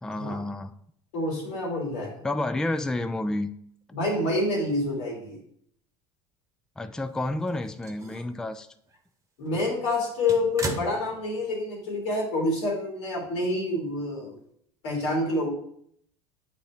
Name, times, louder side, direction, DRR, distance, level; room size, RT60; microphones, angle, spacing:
voice 1, 0.0-0.7 2.2-3.5 6.8-8.7, left 2 dB, 5° left, 10 dB, 0.3 m, -30 dB
voice 2, 1.1-2.3 3.9-5.4 9.4-14.4 14.8-15.5, left 2 dB, 85° left, -3 dB, 2.8 m, -27 dB
sound 1, 7.3-8.4 8.9-9.0 9.5-11.6 11.9-12.0 13.2-13.3, right 2 dB, 20° right, 1.1 m, -38 dB
8.1 x 4.3 x 3.7 m, 0.68 s
supercardioid pair, 90°, 15 cm